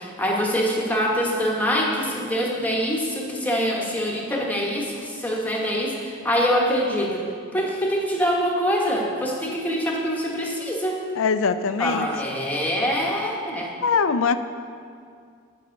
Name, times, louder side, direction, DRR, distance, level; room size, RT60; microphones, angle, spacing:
voice 1, 0.0-7.3 7.5-11.0 11.8-13.7, equal, 10° left, -2 dB, 1.3 m, -24 dB
voice 2, 11.2-12.1 13.8-14.4, left 5 dB, 65° left, 11 dB, 0.5 m, -22 dB
9.5 x 5.6 x 7.8 m, 2.3 s
head